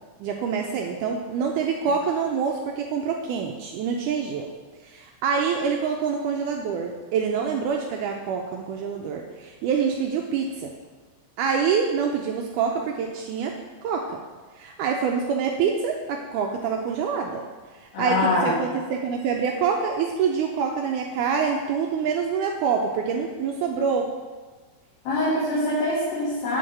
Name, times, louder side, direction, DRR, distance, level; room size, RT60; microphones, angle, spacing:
voice 1, 0.2-4.5 4.8-10.7 11.4-13.6 13.8-14.2 14.6-17.5 17.7-24.1 26.5-26.6, right 6 dB, 90° right, 2 dB, 1.8 m, -26 dB
voice 2, 17.9-18.6 25.1-26.6, left 2 dB, 85° left, -9 dB, 3.4 m, -24 dB
9.0 x 3.9 x 6.5 m, 1.4 s
omnidirectional pair, 4.2 m